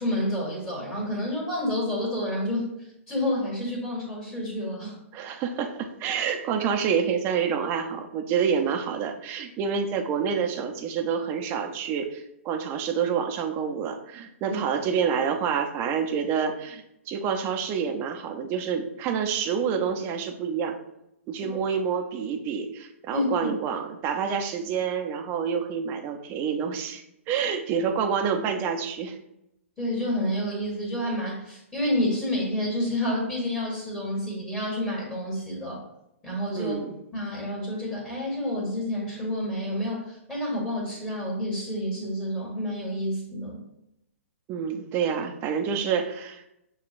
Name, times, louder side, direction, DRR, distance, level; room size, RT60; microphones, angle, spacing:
voice 1, 0.0-2.7 3.1-5.0 14.5-14.6 23.1-23.5 27.4-27.5 29.8-35.9 36.2-36.7 37.1-43.6, left 1 dB, 15° left, -5 dB, 1.3 m, -29 dB
voice 2, 5.1-20.8 21.3-29.2 36.6-36.9 44.5-46.4, right 7 dB, 30° right, 5 dB, 0.5 m, -28 dB
6.8 x 2.3 x 2.4 m, 0.83 s
hypercardioid pair, 130°, 8 cm